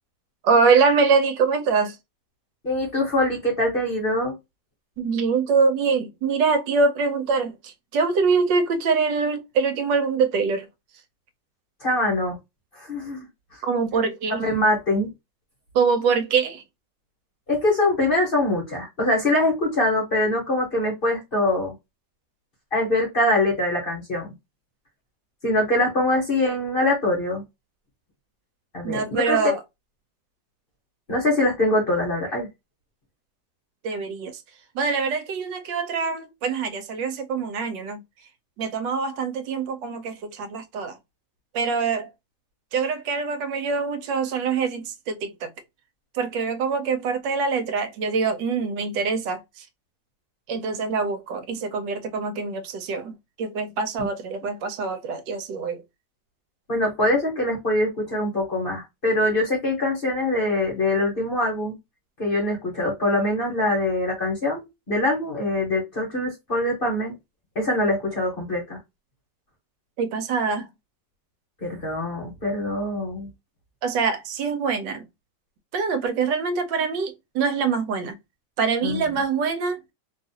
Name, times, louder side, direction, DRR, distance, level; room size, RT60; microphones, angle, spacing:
voice 1, 0.4-2.0 5.0-10.7 13.6-14.4 15.7-16.6 28.8-29.6 33.8-34.4 34.7-38.0 38.6-41.0 41.5-42.1 42.7-45.5 46.1-49.7 50.5-55.8 70.0-70.7 73.8-75.1 75.7-78.2 78.6-79.8, right 5 dB, 80° right, 1.3 m, -24 dB
voice 2, 2.6-4.3 11.8-12.4 12.7-13.3 13.5-13.6 14.4-15.1 17.5-21.7 22.7-24.3 25.4-27.4 28.7-29.4 31.1-32.5 56.7-61.7 62.2-67.1 67.5-68.8 71.6-73.3 78.8-79.0, left 1 dB, 35° left, 1.0 m, -23 dB
3.1 x 2.4 x 2.7 m
omnidirectional pair, 2.0 m